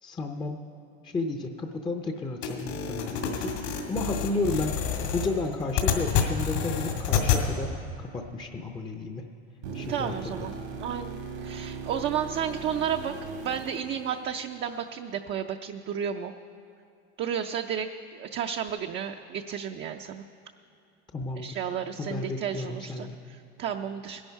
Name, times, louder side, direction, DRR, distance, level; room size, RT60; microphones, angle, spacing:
voice 1, 0.0-0.6 1.0-4.8 5.1-9.3 9.7-10.5 21.1-21.6 22.0-23.2, left 2 dB, 15° left, 4 dB, 0.6 m, -32 dB
sound 1, 2.4-7.4, left 8 dB, 70° left, 2.2 m, -28 dB
sound 2, 9.6-14.7 18.7-18.8, right 4 dB, 85° right, 2.0 m, -39 dB
voice 2, 9.7-10.5 10.8-16.3 17.2-20.2 21.4-24.2, right 8 dB, 35° right, 4 dB, 0.5 m, -32 dB
18.0 x 11.0 x 4.6 m, 2.6 s
supercardioid pair, 110°, 34 cm